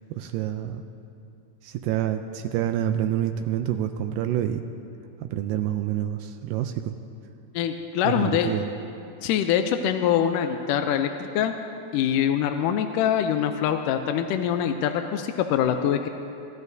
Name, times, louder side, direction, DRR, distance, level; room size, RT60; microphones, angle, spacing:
voice 1, 0.1-0.8 1.6-4.6 5.2-7.0 8.0-8.7, right 11 dB, 85° right, 7 dB, 2.2 m, -27 dB
voice 2, 7.6-8.5 9.2-11.5 11.9-16.1, left 9 dB, 80° left, 6 dB, 2.1 m, -24 dB
27.0 x 13.5 x 2.7 m, 2.7 s
omnidirectional pair, 4.0 m